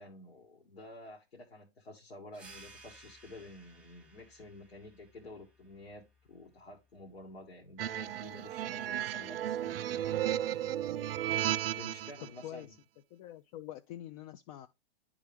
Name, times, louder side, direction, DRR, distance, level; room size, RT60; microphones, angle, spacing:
voice 1, 0.0-6.0 6.3-10.0 11.8-12.8, left 2 dB, 85° left, 1.8 m, -50 dB
sound 1, 2.3-7.5, right 2 dB, 5° right, 1.1 m, -58 dB
sound 2, 7.8-12.3, right 12 dB, 70° right, 0.4 m, -34 dB
voice 2, 12.2-12.8 13.1-14.7, left 12 dB, 35° left, 0.4 m, -46 dB
10.0 x 3.6 x 3.4 m
hypercardioid pair, 110°, 30 cm